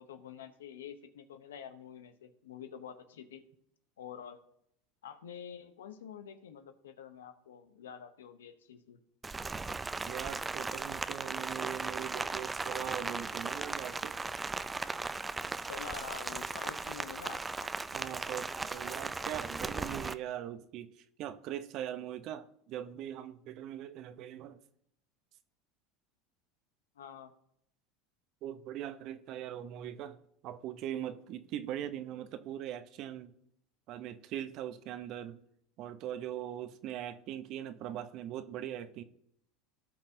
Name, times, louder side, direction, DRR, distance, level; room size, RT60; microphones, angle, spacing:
voice 1, 0.0-3.4 4.0-4.4 5.0-9.0 15.6-17.4 27.0-27.3, left 8 dB, 90° left, 0.8 m, -47 dB
Rain, 9.2-20.1, right 3 dB, 15° right, 0.4 m, -37 dB
voice 2, 10.0-14.2 17.9-20.9 21.2-24.6 28.4-30.2 30.4-33.3 33.9-35.4 35.8-39.0, right 11 dB, 55° right, 0.7 m, -41 dB
sound 1, 10.4-20.1, left 5 dB, 65° left, 1.9 m, -59 dB
16.5 x 5.8 x 2.7 m
hypercardioid pair, 95°, 0 cm